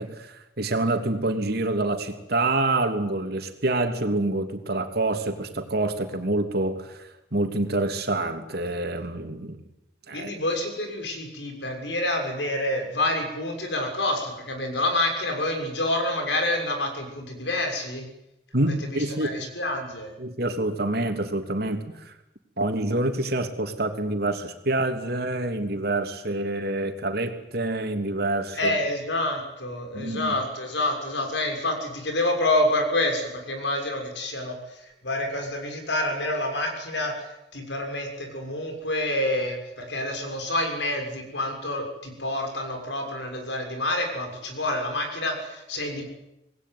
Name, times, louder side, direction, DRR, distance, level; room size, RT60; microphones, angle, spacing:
voice 1, 0.0-7.0 7.3-9.6 10.1-10.3 18.5-19.5 20.2-22.1 22.6-28.8 29.9-30.4, right 2 dB, 60° right, 5 dB, 3.1 m, -27 dB
voice 2, 10.1-18.0 18.7-20.1 28.5-34.6 35.0-46.1, left 1 dB, 80° left, 4 dB, 6.7 m, -28 dB
26.5 x 20.0 x 9.5 m, 0.89 s
head